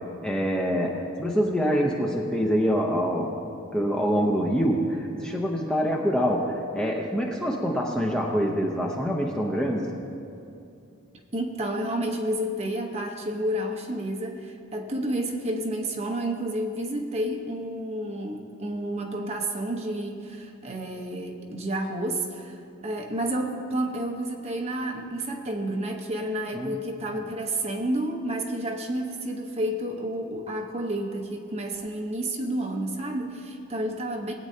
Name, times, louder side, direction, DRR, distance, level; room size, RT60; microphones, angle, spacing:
voice 1, 0.2-3.3 3.7-9.9 26.5-26.8 27.1-27.2, equal, 5° left, -2 dB, 0.7 m, -25 dB
voice 2, 11.3-34.3, right 1 dB, 30° right, 1 dB, 1.0 m, -30 dB
19.5 x 8.8 x 2.8 m, 2.6 s
head